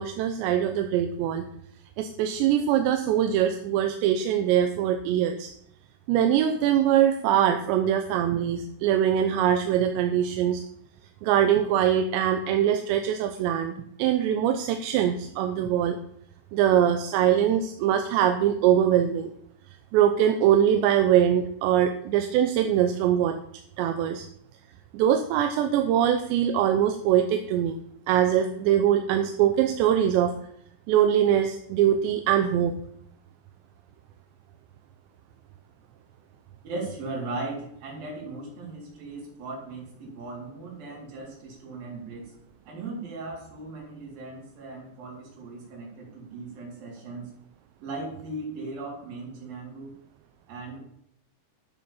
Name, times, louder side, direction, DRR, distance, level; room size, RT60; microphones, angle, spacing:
voice 1, 0.0-1.5 2.0-5.5 6.1-10.6 11.2-16.0 16.5-19.3 19.9-23.4 23.8-24.3 24.9-27.8 28.1-30.4 30.9-32.7, right 10 dB, 80° right, 6 dB, 2.8 m, -23 dB
voice 2, 36.6-42.3 42.7-47.3 47.8-49.9 50.5-50.8, right 2 dB, 50° right, -3 dB, 5.2 m, -38 dB
11.0 x 7.5 x 7.1 m, 0.70 s
omnidirectional pair, 5.5 m